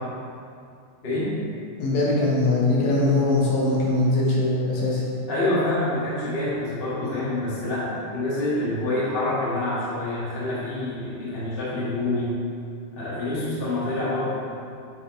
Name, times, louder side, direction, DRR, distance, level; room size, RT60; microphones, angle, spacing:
voice 1, 1.0-1.3 5.3-12.4 12.9-14.3, left 1 dB, 30° left, -9 dB, 1.2 m, -27 dB
voice 2, 1.8-5.0 7.0-7.3, left 2 dB, 70° left, -5 dB, 2.3 m, -22 dB
8.5 x 4.9 x 3.2 m, 2.5 s
omnidirectional pair, 3.7 m